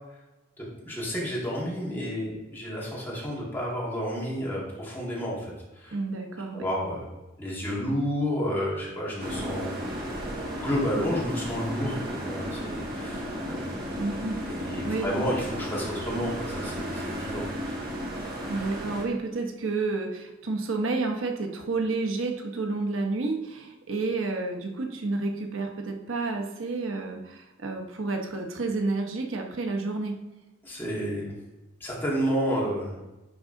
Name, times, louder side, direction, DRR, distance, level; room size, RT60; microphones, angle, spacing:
voice 1, 0.6-5.9 6.5-7.1 7.4-9.7 10.6-13.9 14.5-17.7 30.6-31.3 31.8-33.0, equal, 10° left, -6 dB, 2.0 m, -31 dB
voice 2, 5.9-6.7 14.0-14.4 14.8-15.1 18.5-30.2, right 3 dB, 85° right, 3 dB, 0.9 m, -30 dB
sound 1, 9.2-19.0, equal, 50° right, 1.7 m, -34 dB
10.0 x 3.7 x 3.8 m, 1.0 s
head